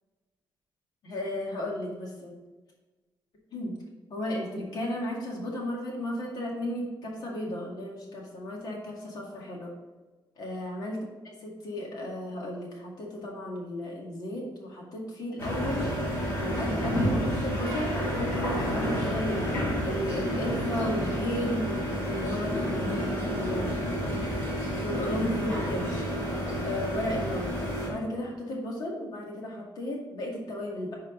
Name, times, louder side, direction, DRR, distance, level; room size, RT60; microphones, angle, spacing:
voice 1, 1.0-2.3 3.5-3.8 4.1-9.7 10.4-11.0 11.3-15.9 16.6-21.6 22.1-23.9 24.8-25.9 26.6-27.6 27.9-30.9, left 1 dB, 60° left, -1 dB, 2.1 m, -34 dB
sound 1, 15.4-27.9, equal, 35° left, 2.7 m, -30 dB
11.5 x 4.2 x 3.9 m, 1.2 s
wide cardioid pair, 170°, 8 cm